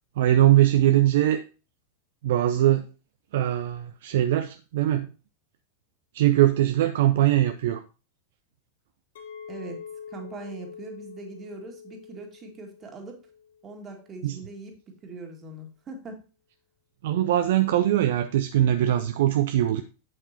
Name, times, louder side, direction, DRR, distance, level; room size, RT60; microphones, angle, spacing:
voice 1, 0.2-1.4 2.2-2.9 3.3-5.1 6.1-7.8 14.2-14.3 17.0-19.8, right 12 dB, 55° right, 9 dB, 0.5 m, -21 dB
Chink clink, 9.2-14.3, left 7 dB, 60° left, 1.2 m, -45 dB
voice 2, 9.5-9.8 10.1-13.2 13.6-16.2, right 3 dB, 25° right, 3 dB, 2.0 m, -41 dB
8.0 x 7.6 x 2.8 m, 0.33 s
figure-of-eight pair, 90°, 0 cm